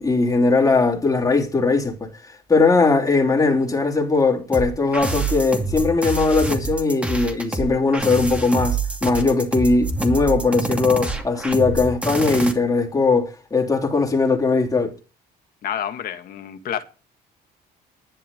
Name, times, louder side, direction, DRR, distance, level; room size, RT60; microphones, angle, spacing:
voice 1, 0.0-14.9, left 3 dB, 20° left, 3.2 m, -19 dB
Glitch Loop, 4.5-12.5, right 3 dB, 5° right, 2.5 m, -26 dB
voice 2, 15.6-16.8, left 9 dB, 60° left, 1.9 m, -29 dB
11.5 x 10.5 x 5.4 m
cardioid pair, 110°, 17 cm